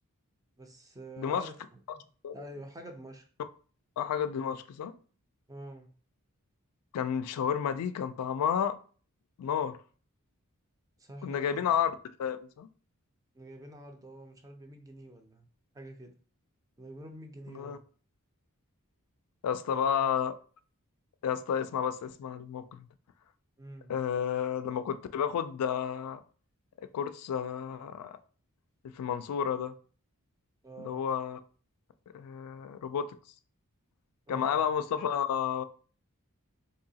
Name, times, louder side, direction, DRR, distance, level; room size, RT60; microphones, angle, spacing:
voice 1, 0.6-1.6 1.9-2.0 2.3-3.3 5.5-5.9 11.0-11.7 13.3-15.5 15.7-16.1 16.8-17.8 19.7-20.1 23.6-23.9 30.6-31.0 34.3-34.6, right 1 dB, 15° right, 0.5 m, -47 dB
voice 2, 1.2-1.5 2.2-2.5 4.0-4.9 6.9-8.8 9.4-9.8 11.2-11.9 12.2-12.7 17.5-17.8 19.4-20.4 21.2-22.9 23.9-26.2 26.8-28.2 28.8-29.7 30.8-31.4 32.1-33.2 34.3-35.6, left 8 dB, 80° left, 0.3 m, -31 dB
3.8 x 2.7 x 2.7 m
head